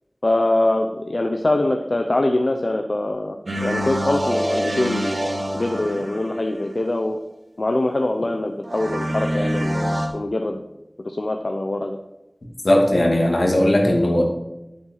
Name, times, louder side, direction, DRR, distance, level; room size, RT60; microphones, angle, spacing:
voice 1, 0.2-3.4 3.6-5.2 5.5-7.2 7.6-10.6 11.0-12.0, left 1 dB, 65° left, 4 dB, 0.8 m, -23 dB
sound 1, 3.5-6.7 8.6-10.1, equal, 75° right, 2.3 m, -25 dB
voice 2, 12.6-14.2, left 1 dB, 85° left, 0 dB, 2.5 m, -17 dB
8.8 x 8.6 x 4.9 m, 0.94 s
wide cardioid pair, 45°, 0 cm